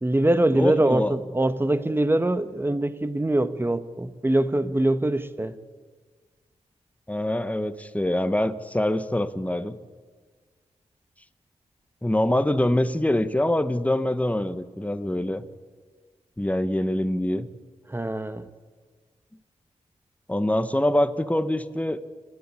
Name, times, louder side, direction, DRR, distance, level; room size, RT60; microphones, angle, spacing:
voice 1, 0.0-5.5 17.9-18.5, right 1 dB, 20° right, 1.3 m, -23 dB
voice 2, 0.5-1.1 7.1-9.8 12.0-15.4 16.4-17.5 20.3-22.0, left 1 dB, 10° left, 1.3 m, -24 dB
29.0 x 10.5 x 9.9 m
cardioid pair, 60°, 13 cm